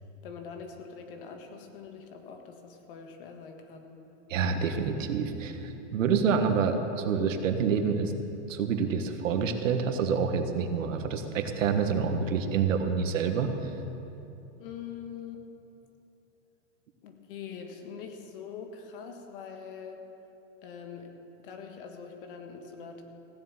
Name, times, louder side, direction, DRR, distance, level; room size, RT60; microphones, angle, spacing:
voice 1, 0.2-4.0 14.6-15.4 17.0-20.0 20.6-21.1 21.4-23.0, left 6 dB, 45° left, 4 dB, 1.6 m, -43 dB
voice 2, 4.3-8.1 8.5-13.7, right 6 dB, 90° right, 6 dB, 1.5 m, -27 dB
16.0 x 7.5 x 8.9 m, 2.9 s
supercardioid pair, 175°, 37 cm